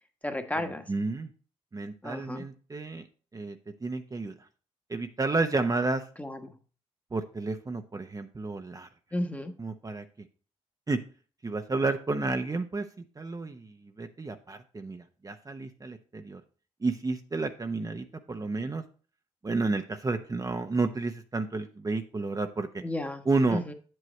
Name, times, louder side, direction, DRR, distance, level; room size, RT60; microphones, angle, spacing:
voice 1, 0.2-0.9 2.0-2.4 6.2-6.6 9.1-9.5 22.8-23.2 23.5-23.7, left 1 dB, 10° left, 6 dB, 1.3 m, -33 dB
voice 2, 0.9-1.3 1.7-3.1 3.3-4.4 4.9-6.0 7.1-8.9 9.6-10.3 10.9-11.0 11.4-12.9 13.2-16.4 16.8-18.8 19.4-22.8 23.3-23.6, right 3 dB, 30° right, 6 dB, 0.8 m, -31 dB
7.8 x 7.6 x 3.2 m, 0.39 s
supercardioid pair, 55°, 12 cm